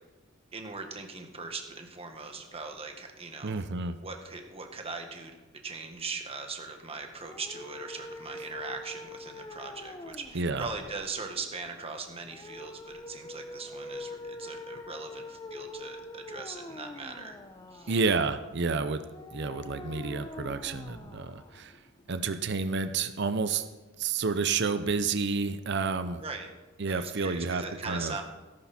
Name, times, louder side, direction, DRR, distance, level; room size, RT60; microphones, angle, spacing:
voice 1, 0.5-3.6 4.0-5.4 5.6-17.4 17.7-17.9 26.2-26.5 26.9-28.2, right 4 dB, 30° right, 4 dB, 1.7 m, -40 dB
voice 2, 3.4-4.0 10.3-10.7 17.9-19.0 19.3-21.7 22.1-23.6 24.0-26.2 26.8-28.2, right 4 dB, 60° right, 10 dB, 0.7 m, -30 dB
sound 1, 7.2-22.2, left 2 dB, 20° left, 0.8 m, -44 dB
17.5 x 11.5 x 4.4 m, 1.2 s
head